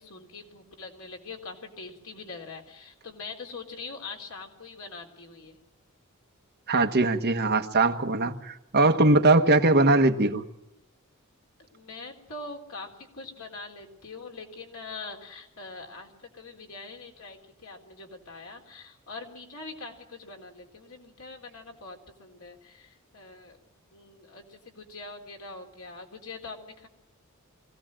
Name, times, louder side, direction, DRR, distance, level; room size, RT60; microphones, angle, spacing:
voice 1, 0.0-5.6 11.7-23.6 23.9-26.9, left 3 dB, 75° left, 2 dB, 3.8 m, -43 dB
voice 2, 6.7-10.4, right 2 dB, 50° right, 6 dB, 1.4 m, -21 dB
23.5 x 17.0 x 7.6 m, 0.89 s
head